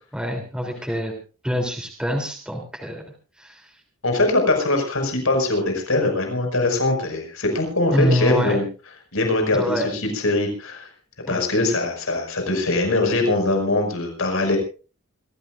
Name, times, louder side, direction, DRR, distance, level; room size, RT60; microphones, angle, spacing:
voice 1, 0.1-1.1 1.4-3.0 3.4-3.7 7.9-8.6 9.5-9.9 11.3-11.4, equal, 5° right, 0 dB, 3.4 m, -25 dB
voice 2, 4.0-8.6 9.1-10.9 11.3-14.6, left 2 dB, 90° left, 4 dB, 6.1 m, -22 dB
26.5 x 16.0 x 2.6 m, 0.36 s
head